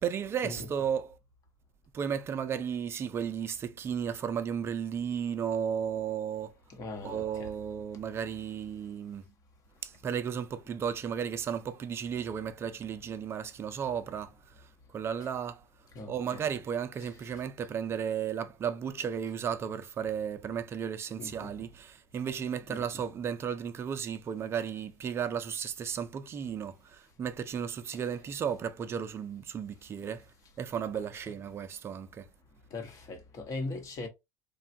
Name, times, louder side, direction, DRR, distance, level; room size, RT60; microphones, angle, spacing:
voice 1, 0.0-1.2 1.9-6.5 7.0-9.2 9.8-15.6 16.0-30.2 30.6-32.3, right 8 dB, 25° right, 0.4 m, -34 dB
voice 2, 6.7-7.5 15.9-16.4 21.2-21.5 22.7-22.8 32.7-34.1, left 2 dB, 40° left, 1.0 m, -39 dB
3.3 x 2.2 x 2.6 m
supercardioid pair, 125°, 9 cm